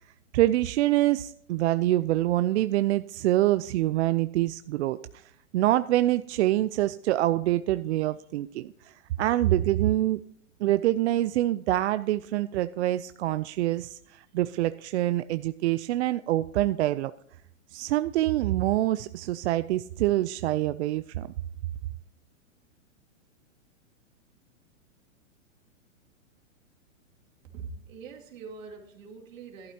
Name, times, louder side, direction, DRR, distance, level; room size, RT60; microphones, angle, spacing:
voice 1, 0.3-10.2 10.6-17.1 17.7-21.3, right 15 dB, 60° right, 12 dB, 0.5 m, -26 dB
voice 2, 27.5-29.7, right 5 dB, 75° right, 1 dB, 2.5 m, -43 dB
13.5 x 12.0 x 2.8 m, 0.68 s
hypercardioid pair, 135°, 40 cm